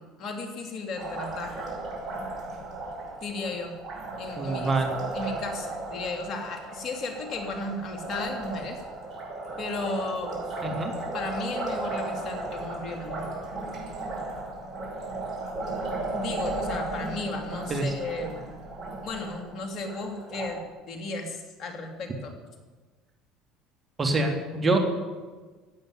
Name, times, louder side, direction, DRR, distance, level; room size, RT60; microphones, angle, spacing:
voice 1, 0.0-1.6 3.2-3.7 4.2-4.8 5.1-8.8 9.6-10.6 11.1-13.3 16.1-18.4 19.0-20.6 20.9-22.3, left 3 dB, 50° left, 4 dB, 3.2 m, -34 dB
Liquid, 1.0-20.5, right 2 dB, 50° right, 5.7 m, -35 dB
voice 2, 4.4-4.9 10.6-10.9 17.7-17.9 24.0-24.8, right 3 dB, 30° right, 4 dB, 3.3 m, -25 dB
15.5 x 9.0 x 9.8 m, 1.4 s
hypercardioid pair, 70°, 0 cm